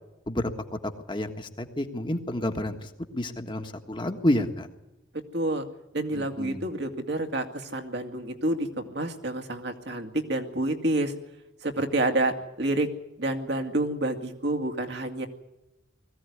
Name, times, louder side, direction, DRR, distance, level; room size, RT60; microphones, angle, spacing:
voice 1, 1.1-4.7 6.1-6.6, left 1 dB, 25° left, 6 dB, 1.6 m, -29 dB
voice 2, 5.3-5.7 5.9-11.1 11.6-12.9 13.2-15.3, right 1 dB, 65° right, 5 dB, 2.2 m, -28 dB
21.0 x 16.0 x 9.6 m, 0.95 s
head